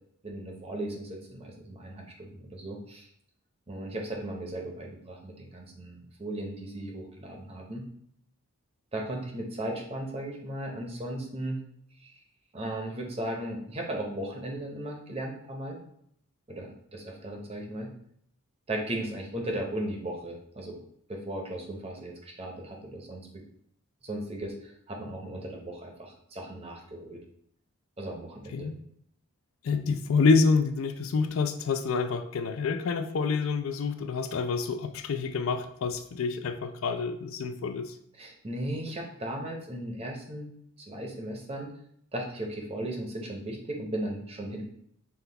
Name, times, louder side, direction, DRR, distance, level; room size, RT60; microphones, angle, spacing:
voice 1, 0.2-3.1 3.7-7.9 8.9-11.6 12.5-15.8 16.5-17.9 18.7-20.8 21.1-23.4 24.0-27.2 28.0-28.7 38.2-40.5 40.8-41.7 42.1-44.6, right 1 dB, 25° right, 0 dB, 0.7 m, -36 dB
voice 2, 29.6-37.9, left 4 dB, 65° left, 9 dB, 0.4 m, -27 dB
5.6 x 2.3 x 3.3 m, 0.70 s
head